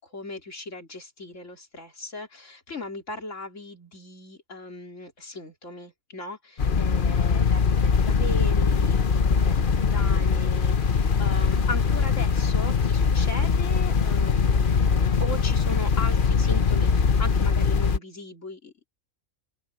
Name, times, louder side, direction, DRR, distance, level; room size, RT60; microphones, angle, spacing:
voice 1, 0.0-18.9, left 2 dB, 60° left, 4.0 m, -38 dB
sound 1, 6.6-18.0, left 5 dB, 40° left, 1.0 m, -22 dB
open air
omnidirectional pair, 1.4 m